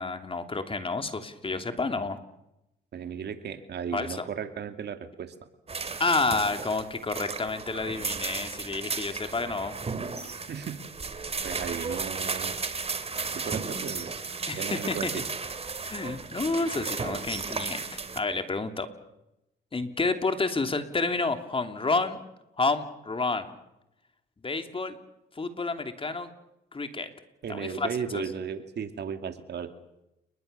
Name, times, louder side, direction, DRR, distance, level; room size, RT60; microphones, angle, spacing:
voice 1, 0.0-2.2 3.9-4.2 6.0-9.8 14.5-15.1 15.8-18.9 19.7-22.2 22.6-23.5 24.4-25.0 25.3-26.3 26.7-27.1 27.5-28.2, left 3 dB, 25° left, 7 dB, 3.0 m, -30 dB
voice 2, 2.9-5.3 10.5-10.8 11.4-12.5 13.3-14.1 14.6-15.2 27.4-29.7, right 7 dB, 60° right, 8 dB, 2.5 m, -35 dB
sound 1, 5.7-18.2, right 4 dB, 30° right, 2.8 m, -34 dB
30.0 x 21.0 x 6.9 m, 0.88 s
cardioid pair, 90°, 20 cm